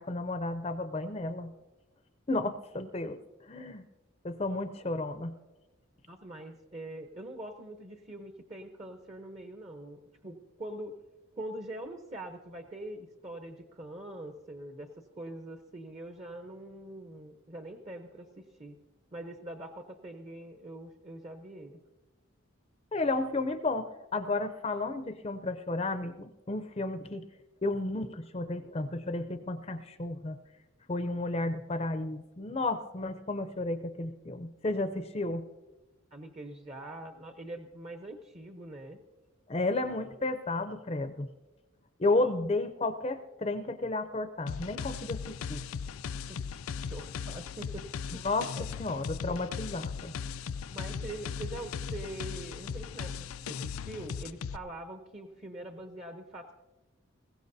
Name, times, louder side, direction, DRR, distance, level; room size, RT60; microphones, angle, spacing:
voice 1, 0.0-1.5 2.3-3.2 3.4-3.8 4.2-5.3 22.9-27.3 27.6-30.4 30.9-35.4 39.5-41.3 42.0-45.6 48.2-48.5 48.8-50.1, left 2 dB, 30° left, 9 dB, 0.5 m, -32 dB
voice 2, 6.1-11.0 11.3-18.8 19.1-21.8 36.1-39.0 42.2-42.3 46.3-48.2 48.5-48.7 50.7-56.5, right 1 dB, 30° right, 5 dB, 0.8 m, -44 dB
sound 1, 44.5-54.6, left 6 dB, 85° left, 0.4 m, -38 dB
21.0 x 16.5 x 2.7 m, 1.1 s
head